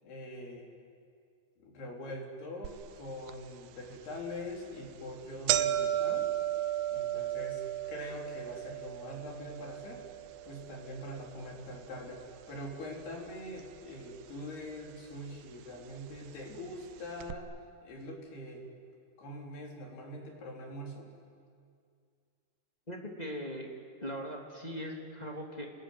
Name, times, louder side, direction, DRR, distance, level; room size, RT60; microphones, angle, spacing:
voice 1, 0.0-0.7 1.6-6.3 6.9-7.6 7.9-10.0 10.5-12.2 12.5-17.5 17.8-18.7 19.2-21.1, left 1 dB, 80° left, 0 dB, 5.8 m, -43 dB
sound 1, 2.6-2.7 3.3-3.4 4.2-4.4 4.7-4.8 5.1-13.3 13.6-14.3 15.1-15.2 16.2-16.3 16.5-16.6 17.2-17.3, right 12 dB, 85° right, 2.8 m, -35 dB
voice 2, 22.9-23.7 24.0-25.7, equal, 10° left, 0 dB, 2.2 m, -40 dB
30.0 x 20.5 x 9.6 m, 2.2 s
omnidirectional pair, 4.5 m